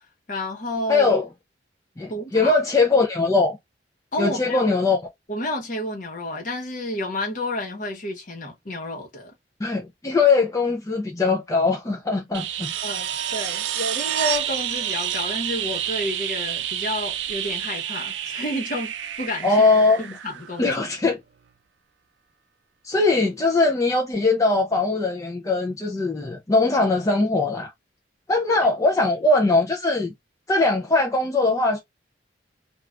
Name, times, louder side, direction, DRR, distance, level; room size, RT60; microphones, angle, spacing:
voice 1, 0.3-1.1 2.1-2.6 4.1-4.7 5.3-9.3 12.8-19.6 20.0-20.7, left 1 dB, 45° left, 1.0 m, -30 dB
voice 2, 0.9-1.3 2.0-3.6 4.2-5.0 9.6-12.7 19.4-20.0 20.6-21.2 22.8-27.7 28.3-30.1 30.5-31.8, left 3 dB, 15° left, 0.4 m, -21 dB
sound 1, 12.3-21.0 23.4-23.5, right 11 dB, 80° right, 0.4 m, -29 dB
2.4 x 2.4 x 3.1 m
head